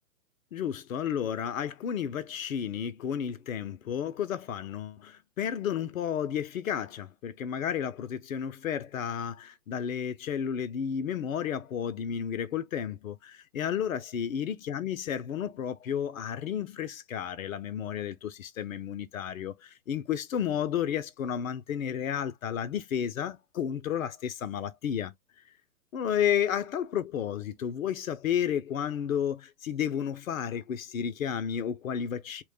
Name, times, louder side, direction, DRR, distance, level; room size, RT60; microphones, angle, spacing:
voice 1, 0.5-25.1 25.9-32.4, left 9 dB, 65° left, 0.6 m, -32 dB
3.1 x 2.2 x 3.1 m
figure-of-eight pair, 120°, 44 cm